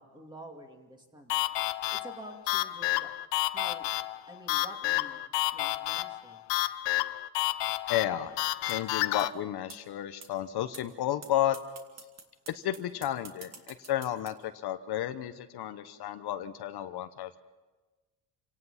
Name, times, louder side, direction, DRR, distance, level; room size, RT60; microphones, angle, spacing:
voice 1, 0.0-1.5 1.9-3.1 3.5-3.9 4.3-5.2 5.5-6.4, right 1 dB, 10° right, 2 dB, 2.7 m, -48 dB
sound 1, 1.3-9.3, left 17 dB, 80° left, 0.7 m, -30 dB
voice 2, 7.9-8.3 8.6-11.6 12.5-17.4, left 12 dB, 60° left, 9 dB, 1.0 m, -32 dB
sound 2, 8.7-8.8 9.2-9.3 9.7-9.8 10.2-10.3 10.7-10.8 11.2-11.3 11.5-14.3, right 4 dB, 35° right, 2.5 m, -46 dB
27.5 x 18.0 x 5.7 m, 1.2 s
cardioid pair, 130°, 43 cm